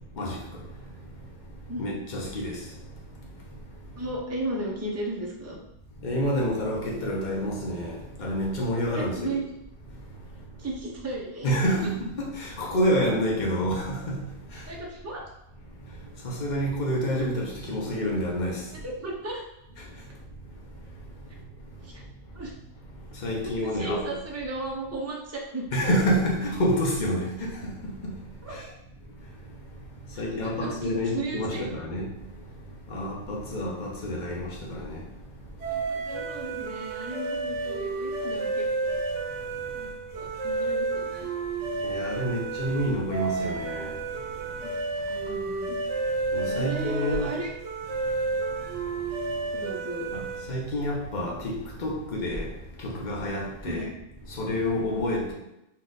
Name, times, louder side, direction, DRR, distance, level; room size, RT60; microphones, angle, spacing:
voice 1, 1.8-2.6 6.0-9.4 11.4-14.2 16.2-18.6 23.2-24.0 25.7-27.5 28.0-28.1 30.2-32.1 32.9-35.0 41.8-43.9 46.3-47.3 50.5-51.6 51.8-52.5 52.8-53.9 54.4-55.3, equal, 45° left, 0.9 m, -28 dB
voice 2, 4.0-5.6 8.9-9.4 10.6-11.9 14.7-15.2 18.7-19.4 21.8-22.0 22.3-22.5 23.6-25.6 28.4-28.7 30.4-31.8 35.6-39.0 39.7-41.3 44.6-44.7 45.1-45.8 46.4-47.5 49.5-50.1 53.6-53.9, right 2 dB, 15° right, 0.6 m, -35 dB
sound 1, 35.6-50.7, right 3 dB, 75° right, 1.2 m, -31 dB
4.3 x 2.5 x 3.9 m
omnidirectional pair, 1.2 m